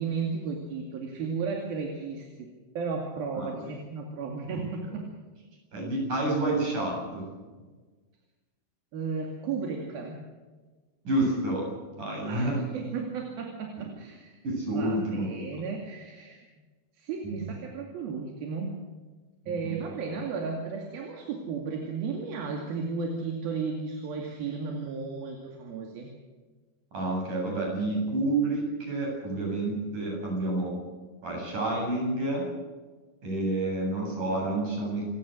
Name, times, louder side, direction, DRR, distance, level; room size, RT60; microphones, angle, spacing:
voice 1, 0.0-2.5 2.8-5.1 8.9-10.3 12.2-14.4 14.7-16.4 17.0-18.8 19.5-26.1, right 5 dB, 75° right, 2 dB, 4.2 m, -34 dB
voice 2, 5.7-7.3 11.0-11.7 12.0-12.6 14.4-15.3 17.2-17.4 19.4-19.8 26.9-30.8 31.2-32.5 33.2-35.2, right 2 dB, 55° right, 0 dB, 9.4 m, -29 dB
28.0 x 17.5 x 6.6 m, 1.3 s
omnidirectional pair, 4.3 m